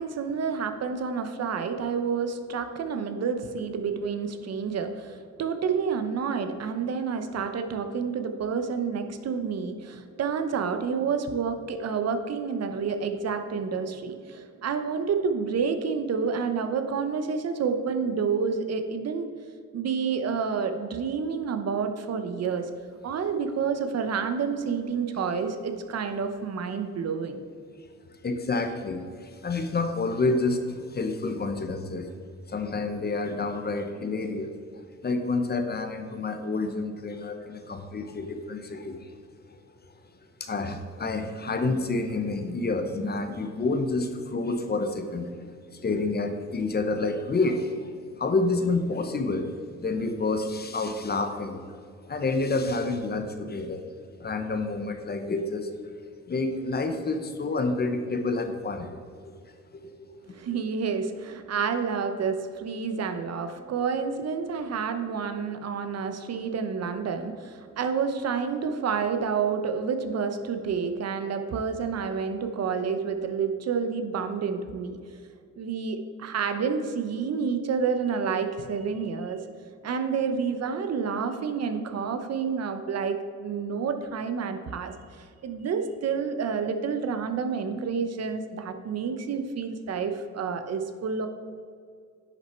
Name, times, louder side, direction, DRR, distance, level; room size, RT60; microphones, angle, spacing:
voice 1, 0.0-19.3 19.7-22.7 23.0-27.4 60.3-75.0 75.6-79.4 79.8-91.3, right 6 dB, 55° right, 7 dB, 0.9 m, -29 dB
voice 2, 28.2-32.1 32.5-34.5 35.0-39.1 39.5-39.6 40.4-45.3 45.7-49.5 49.8-51.7 52.0-53.8 54.2-55.9 56.3-59.3 59.7-60.4, left 3 dB, 35° left, 7 dB, 1.0 m, -29 dB
10.5 x 6.3 x 4.5 m, 2.2 s
cardioid pair, 90°, 30 cm